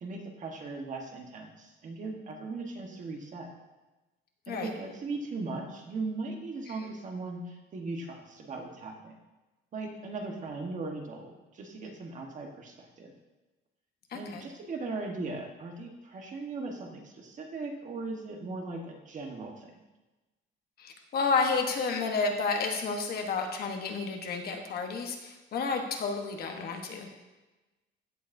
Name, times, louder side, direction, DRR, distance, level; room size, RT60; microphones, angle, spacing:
voice 1, 0.0-3.5 4.5-9.1 9.7-13.1 14.1-19.7, right 3 dB, 35° right, 2 dB, 1.2 m, -38 dB
voice 2, 14.1-14.4 20.8-27.1, left 4 dB, 50° left, 4 dB, 1.1 m, -31 dB
15.0 x 6.8 x 2.6 m, 1.1 s
cardioid pair, 170°, 21 cm